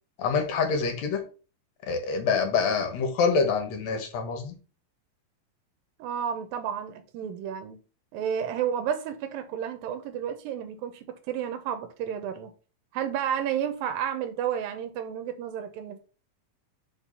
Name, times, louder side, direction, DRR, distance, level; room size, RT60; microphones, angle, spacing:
voice 1, 0.2-1.2 1.9-4.6, left 5 dB, 60° left, 2.3 m, -26 dB
voice 2, 6.0-7.8 8.1-12.5 12.9-16.0, right 9 dB, 90° right, 2.6 m, -31 dB
5.4 x 4.6 x 5.5 m
omnidirectional pair, 4.0 m